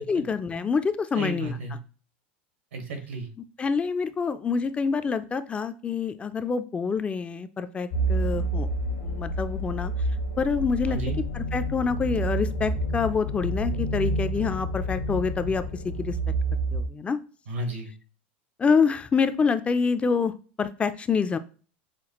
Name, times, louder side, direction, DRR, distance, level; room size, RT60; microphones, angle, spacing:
voice 1, 0.1-1.6 3.6-8.7 9.0-9.9 10.4-11.0 11.3-16.2 16.7-17.2 18.6-21.4, left 5 dB, 20° left, 11 dB, 0.3 m, -26 dB
voice 2, 1.1-1.8 2.7-3.3 10.8-11.2 17.5-17.9, right 2 dB, 90° right, 4 dB, 1.2 m, -33 dB
sound 1, 7.9-16.8, right 1 dB, 85° left, 1.1 m, -29 dB
5.8 x 2.3 x 2.9 m, 0.38 s
hypercardioid pair, 110°, 6 cm